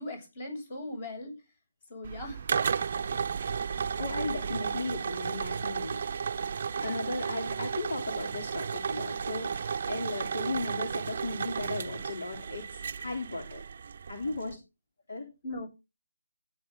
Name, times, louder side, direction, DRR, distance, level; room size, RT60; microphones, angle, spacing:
voice 1, 0.0-1.3 1.9-2.4 3.1-3.2 14.5-14.6 15.4-15.7, left 1 dB, 35° left, 6 dB, 7.7 m, -39 dB
sound 1, 2.0-14.5, right 6 dB, 45° right, 0.7 m, -33 dB
voice 2, 4.0-6.0 6.8-13.6 14.1-14.6 15.1-15.3, left 2 dB, 65° left, 3 dB, 3.6 m, -36 dB
16.0 x 8.9 x 3.9 m, 0.27 s
figure-of-eight pair, 155°, 0 cm